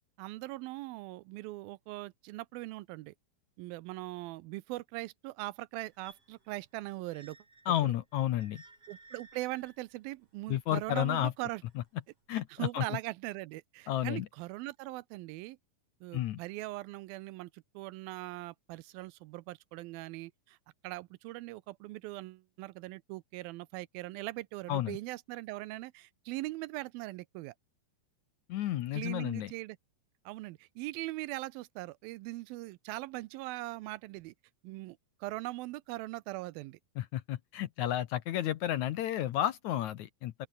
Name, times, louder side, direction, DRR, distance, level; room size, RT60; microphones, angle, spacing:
voice 1, 0.2-3.1 3.6-7.4 7.8-7.9 8.9-11.6 12.3-15.6 16.0-20.6 20.8-27.5 28.9-29.8 30.3-34.3 34.6-36.8, right 19 dB, 85° right, 2.5 m, -41 dB
sound 1, 5.8-11.9 12.6-12.7, right 3 dB, 40° right, 7.5 m, -59 dB
voice 2, 7.7-8.6 10.5-11.3 12.3-13.0 13.9-14.3 16.1-16.4 24.7-25.0 28.5-29.5 37.0-40.5, left 12 dB, 70° left, 1.9 m, -32 dB
open air
omnidirectional pair, 4.2 m